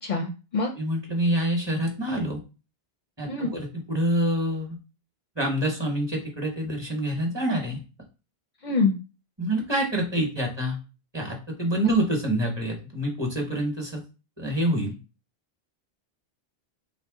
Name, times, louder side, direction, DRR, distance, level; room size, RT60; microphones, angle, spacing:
voice 1, 0.0-0.7 3.3-3.6 8.6-8.9, left 4 dB, 55° left, 1 dB, 0.5 m, -25 dB
voice 2, 0.7-2.4 3.2-4.8 5.4-7.8 9.4-10.8 11.1-14.0 14.4-15.0, right 1 dB, 25° right, 1 dB, 0.9 m, -26 dB
3.3 x 2.6 x 3.5 m, 0.32 s
omnidirectional pair, 1.0 m